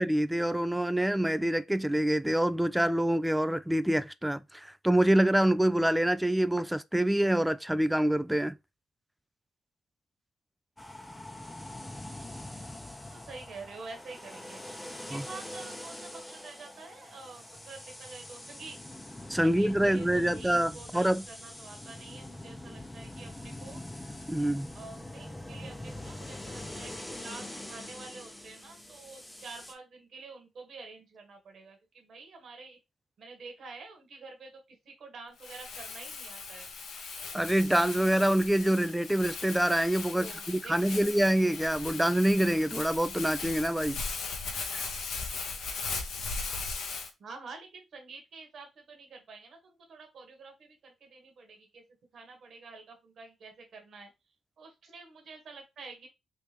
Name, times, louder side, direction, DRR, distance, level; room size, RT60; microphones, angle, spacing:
voice 1, 0.0-8.6 15.1-15.3 19.3-21.2 24.3-24.7 37.3-44.0 44.7-44.8, right 1 dB, 5° right, 0.3 m, -26 dB
sound 1, 10.8-29.7, left 1 dB, 15° left, 0.7 m, -44 dB
voice 2, 13.1-14.6 14.9-18.8 19.4-23.8 24.7-32.8 33.2-34.5 34.8-36.7 40.2-41.1 47.2-51.8 52.1-54.1 54.6-56.1, right 4 dB, 65° right, 1.2 m, -48 dB
Crumpling crinkling, 35.4-47.1, left 4 dB, 80° left, 0.8 m, -38 dB
3.2 x 2.9 x 3.3 m
cardioid pair, 70°, 0 cm